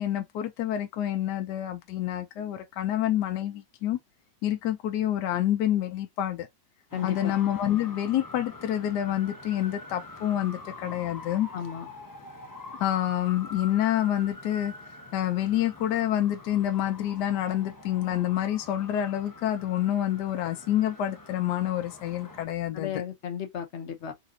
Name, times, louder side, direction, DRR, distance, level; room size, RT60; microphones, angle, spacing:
voice 1, 0.0-4.0 4.4-6.5 7.0-11.5 12.8-14.7 15.1-23.0, left 12 dB, 75° left, 1.2 m, -27 dB
voice 2, 6.9-7.4 11.5-11.9 22.7-24.1, left 8 dB, 55° left, 0.9 m, -34 dB
Traffic noise roadway noise, 6.9-22.4, left 2 dB, 20° left, 0.5 m, -45 dB
4.1 x 2.8 x 2.6 m
omnidirectional pair, 1.8 m